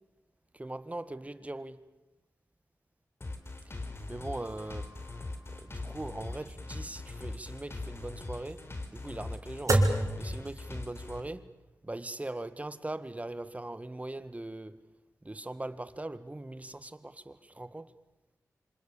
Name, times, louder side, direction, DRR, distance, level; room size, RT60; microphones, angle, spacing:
voice 1, 0.5-1.8 4.1-4.9 5.5-8.6 8.9-9.8 10.2-11.5 11.8-14.8 15.2-17.9, right 2 dB, 25° right, 1.7 m, -40 dB
sound 1, 3.2-11.2, left 2 dB, 40° left, 3.8 m, -41 dB
sound 2, 4.4-11.1, right 2 dB, 55° right, 5.1 m, -33 dB
27.0 x 26.0 x 7.2 m
cardioid pair, 50°, 6 cm